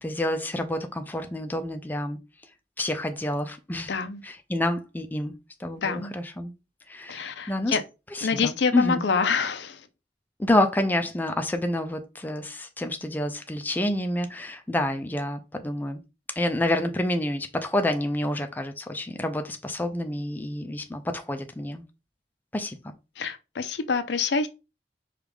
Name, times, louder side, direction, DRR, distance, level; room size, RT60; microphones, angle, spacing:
voice 1, 0.0-2.2 2.8-3.9 4.2-5.3 5.6-6.5 6.9-7.8 8.1-9.0 10.4-16.0 16.4-21.8 22.5-22.9, left 1 dB, 10° left, 0.4 m, -28 dB
voice 2, 3.9-4.2 5.8-6.1 7.1-7.8 8.2-9.8 23.2-24.5, left 5 dB, 75° left, 0.5 m, -26 dB
4.7 x 2.4 x 3.4 m
head